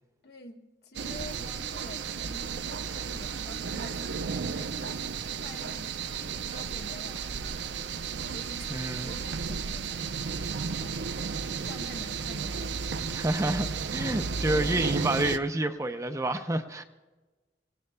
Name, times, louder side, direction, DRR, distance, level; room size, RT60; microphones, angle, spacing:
voice 1, 0.2-4.7 5.4-6.2 6.5-7.8 8.3-11.0 11.4-13.0, left 1 dB, 60° left, 1.7 m, -47 dB
sound 1, 0.9-15.4, right 5 dB, 85° right, 0.6 m, -33 dB
voice 2, 8.7-9.1 13.1-16.8, right 1 dB, 20° right, 0.6 m, -29 dB
26.0 x 18.0 x 2.2 m
head